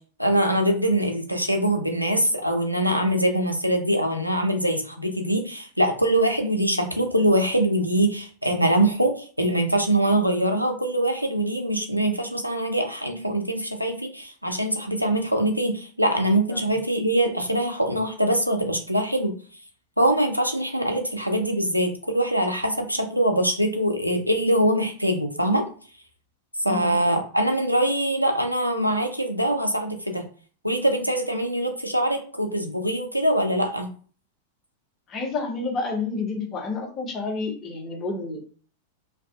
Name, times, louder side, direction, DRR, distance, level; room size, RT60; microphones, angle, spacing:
voice 1, 0.2-19.3 20.0-25.6 26.6-30.2 30.6-33.9, right 1 dB, 90° right, 3 dB, 0.4 m, -23 dB
voice 2, 26.7-27.0 35.1-38.4, left 3 dB, 25° left, 1 dB, 0.6 m, -30 dB
2.3 x 2.3 x 2.3 m, 0.42 s
figure-of-eight pair, 90°, 0 cm